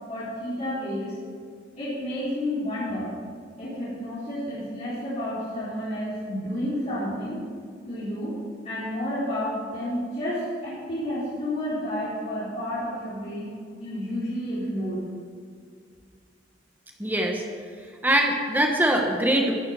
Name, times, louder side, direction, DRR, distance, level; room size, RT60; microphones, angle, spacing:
voice 1, 0.1-1.1 1.8-3.1 3.6-7.4 7.9-8.3 8.6-13.5 13.8-15.1, left 1 dB, 35° left, -12 dB, 4.2 m, -30 dB
voice 2, 17.0-17.4 18.0-19.5, right 1 dB, 10° right, 1 dB, 1.2 m, -22 dB
13.5 x 7.3 x 7.5 m, 2.1 s
head